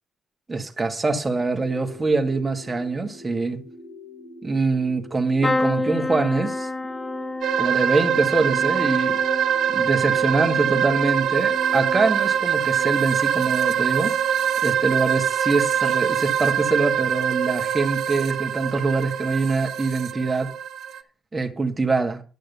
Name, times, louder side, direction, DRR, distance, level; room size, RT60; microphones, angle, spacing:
voice 1, 0.5-3.6 4.4-6.7 7.6-9.2 9.7-14.2 14.6-20.5 21.3-22.2, right 3 dB, 20° right, 1.8 m, -24 dB
sound 1, 1.3-12.0, left 3 dB, 85° left, 2.9 m, -44 dB
sound 2, 5.4-13.3 13.7-14.2 15.5-15.7 15.9-16.0, left 2 dB, 20° left, 0.9 m, -31 dB
sound 3, 7.4-21.0, right 8 dB, 70° right, 0.9 m, -23 dB
11.0 x 6.4 x 6.8 m
cardioid pair, 90°, 0 cm